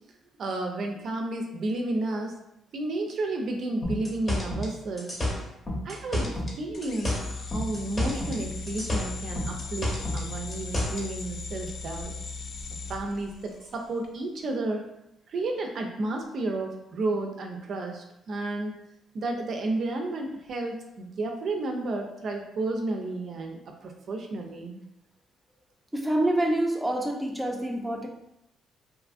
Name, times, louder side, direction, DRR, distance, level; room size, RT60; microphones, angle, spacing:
voice 1, 0.4-2.4 2.7-5.2 5.8-6.3 6.5-12.1 12.9-14.9 15.3-18.8 19.1-24.8, right 2 dB, 60° right, 2 dB, 0.4 m, -32 dB
sound 1, 3.8-6.6 6.8-8.4 8.7-11.0, left 1 dB, 30° left, 0.8 m, -30 dB
sound 2, 6.7-13.9, left 4 dB, 60° left, 0.3 m, -38 dB
voice 2, 25.9-28.1, right 1 dB, 5° right, 0 dB, 0.5 m, -26 dB
2.7 x 2.4 x 2.4 m, 0.83 s
cardioid pair, 90°, 0 cm